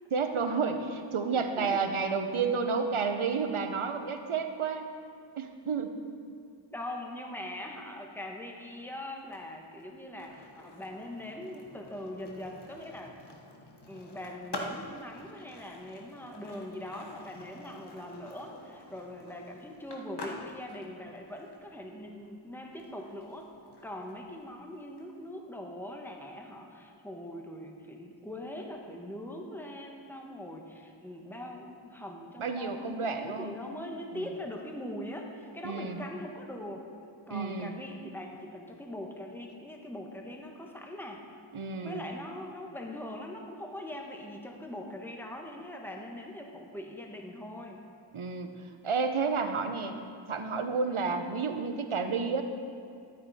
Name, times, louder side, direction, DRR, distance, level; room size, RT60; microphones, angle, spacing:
voice 1, 0.1-4.9 5.4-6.0 32.4-33.5 35.6-36.0 37.3-37.7 41.5-42.1 48.1-48.5 48.8-49.9 50.3-52.4, right 5 dB, 90° right, 7 dB, 0.8 m, -31 dB
voice 2, 1.3-1.8 6.7-13.2 13.9-23.5 23.8-36.9 37.3-41.3 41.8-47.8 50.9-51.2, left 1 dB, 5° left, 1 dB, 1.3 m, -42 dB
Skateboard, 9.2-25.1, left 1 dB, 55° left, 1.3 m, -48 dB
12.5 x 9.2 x 4.2 m, 2.4 s
wide cardioid pair, 45°, 48 cm